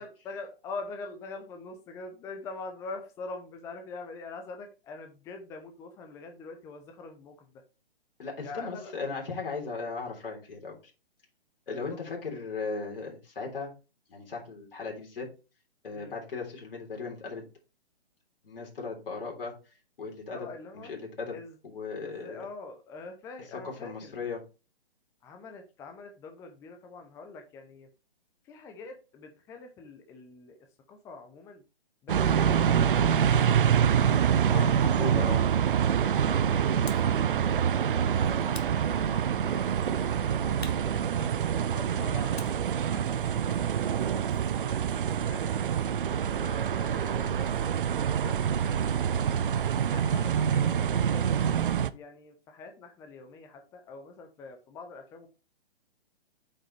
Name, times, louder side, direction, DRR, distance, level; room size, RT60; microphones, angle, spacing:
voice 1, 0.0-7.5 8.4-8.9 11.7-12.0 15.9-16.1 20.3-20.9 21.3-21.5 22.0-24.1 25.2-27.9 28.4-30.6 30.9-31.6 32.0-34.2 34.5-35.0 36.0-39.9 40.3-41.3 41.6-44.8 45.0-45.6 46.3-47.7 48.0-49.1 49.9-51.3 51.6-55.3, left 3 dB, 10° left, 5 dB, 0.6 m, -44 dB
voice 2, 8.2-10.9 11.7-13.7 14.1-15.3 15.8-17.4 18.4-19.5 20.0-20.5 20.7-21.4 21.6-22.4 23.6-24.4 34.4-35.4, left 4 dB, 60° left, -1 dB, 3.4 m, -37 dB
sound 1, 32.1-51.9, right 8 dB, 55° right, 0.6 m, -26 dB
sound 2, 36.9-37.2 38.5-39.4 40.6-41.7 42.4-44.6, left 4 dB, 85° left, 1.5 m, -48 dB
8.5 x 5.5 x 3.2 m, 0.31 s
figure-of-eight pair, 135°, 31 cm